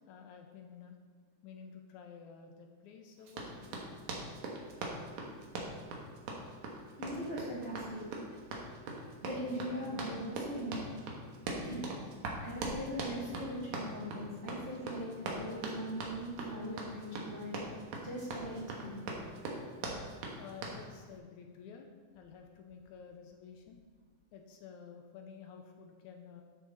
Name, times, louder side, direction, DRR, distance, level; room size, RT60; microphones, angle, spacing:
voice 1, 0.1-1.0 1.4-3.8 20.4-21.9 22.1-23.8 24.3-26.4, left 6 dB, 80° left, 4 dB, 2.1 m, -51 dB
Run, 3.3-20.8, right 2 dB, 70° right, 2.6 m, -41 dB
voice 2, 7.0-8.0 9.2-10.9 11.4-11.8 12.4-17.6 18.0-18.9, equal, 20° right, -8 dB, 2.7 m, -40 dB
12.5 x 6.6 x 4.0 m, 1.5 s
omnidirectional pair, 3.6 m